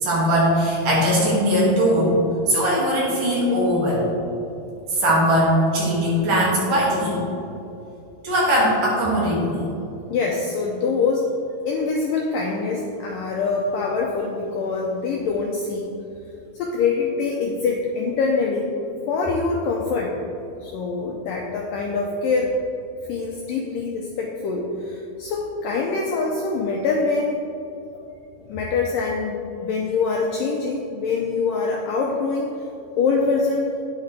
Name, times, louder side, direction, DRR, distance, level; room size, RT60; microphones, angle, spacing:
voice 1, 0.0-2.2 2.5-4.1 4.9-7.2 8.2-9.6, equal, 55° right, -6 dB, 3.6 m, -20 dB
voice 2, 10.1-11.3 11.7-15.9 16.5-18.7 19.1-20.1 20.6-22.5 23.1-27.4 28.4-32.5 33.0-33.8, left 4 dB, 85° left, -1 dB, 1.9 m, -24 dB
10.5 x 9.1 x 3.4 m, 2.8 s
omnidirectional pair, 4.8 m